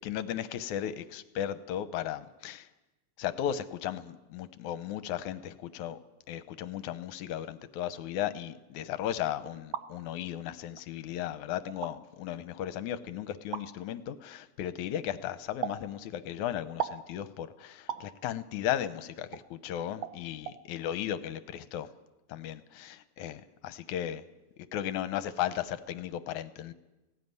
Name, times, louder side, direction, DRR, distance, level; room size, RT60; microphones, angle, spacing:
voice 1, 0.0-2.7 3.2-6.0 6.3-21.9 22.3-24.2 24.7-26.7, left 11 dB, 75° left, 13 dB, 2.2 m, -35 dB
sound 1, 9.5-9.9 10.8-10.9 11.7-11.9 13.5-13.7 15.6-15.8 16.8-17.0 17.9-18.1 19.3-19.4 20.0-20.2 20.5-20.6, right 10 dB, 70° right, 1.8 m, -35 dB
18.0 x 17.0 x 9.6 m, 1.0 s
omnidirectional pair, 3.5 m